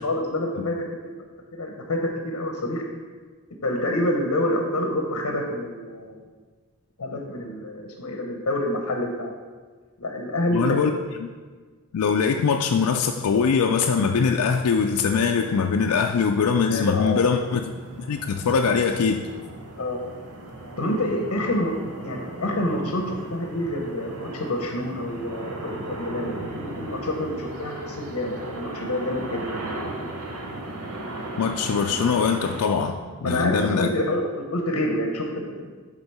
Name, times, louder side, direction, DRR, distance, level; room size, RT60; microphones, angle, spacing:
voice 1, 0.0-0.7 1.5-2.0 2.2-2.8 3.6-6.2 7.0-9.3 10.0-10.8 16.7-17.2 19.8-20.0 20.8-21.7 22.0-29.4 33.2-35.7, left 1 dB, 70° left, 2 dB, 0.8 m, -27 dB
voice 2, 10.5-10.9 11.2-11.3 11.9-17.6 18.0-19.2 31.4-33.9, left 6 dB, 90° left, 3 dB, 0.4 m, -22 dB
sound 1, 15.3-32.6, right 2 dB, 90° right, 1.0 m, -37 dB
7.9 x 3.8 x 5.5 m, 1.5 s
head